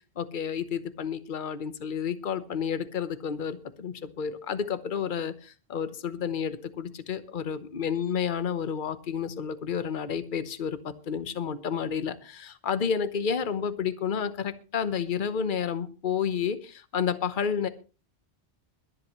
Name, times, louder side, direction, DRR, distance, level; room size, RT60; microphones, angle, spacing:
voice 1, 0.0-17.7, left 7 dB, 50° left, 12 dB, 1.1 m, -30 dB
21.5 x 10.5 x 3.1 m, 0.33 s
omnidirectional pair, 1.1 m